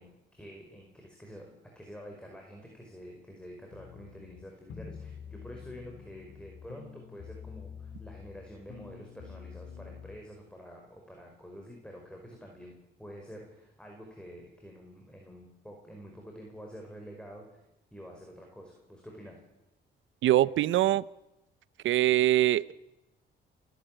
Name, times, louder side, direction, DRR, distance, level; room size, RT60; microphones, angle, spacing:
voice 1, 0.0-17.6 17.9-19.4, equal, 5° left, 1 dB, 5.2 m, -48 dB
sound 1, 3.7-10.2, left 6 dB, 75° left, 3.2 m, -47 dB
voice 2, 20.2-21.0 21.8-22.7, right 14 dB, 75° right, 19 dB, 0.7 m, -23 dB
28.5 x 12.0 x 9.1 m, 0.92 s
cardioid pair, 90°, 20 cm